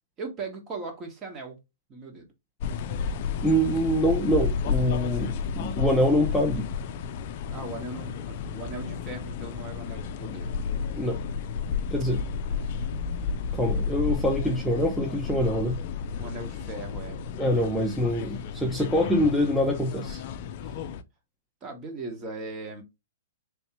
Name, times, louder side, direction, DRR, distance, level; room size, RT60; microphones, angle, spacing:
voice 1, 0.2-1.6 1.9-2.3 7.5-10.5 12.5-12.6 16.2-17.2 20.6-20.8 21.6-22.8, right 3 dB, 25° right, 1.2 m, -38 dB
sound 1, 2.6-21.0, left 6 dB, 50° left, 0.4 m, -32 dB
voice 2, 3.4-6.7 11.0-11.2 11.9-12.2 13.5-15.8 17.4-20.2, equal, ahead, 0.6 m, -25 dB
3.5 x 2.8 x 2.9 m
hypercardioid pair, 135°, 0 cm